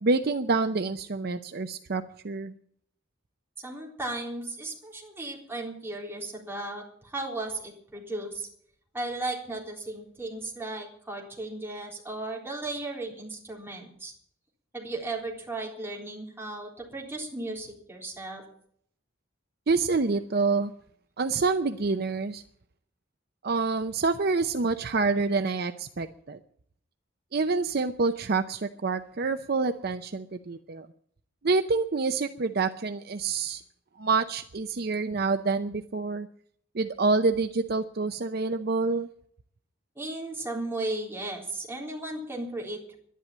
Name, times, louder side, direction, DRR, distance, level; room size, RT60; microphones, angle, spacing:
voice 1, 0.0-2.5 19.7-20.7 21.2-22.4 23.4-26.4 27.3-30.9 31.4-33.6 34.0-36.3 36.7-39.1, right 4 dB, 50° right, 9 dB, 0.6 m, -27 dB
voice 2, 3.6-8.5 8.9-14.1 14.7-18.4 40.0-43.0, right 2 dB, 10° right, -2 dB, 3.8 m, -35 dB
11.5 x 11.0 x 8.6 m, 0.64 s
head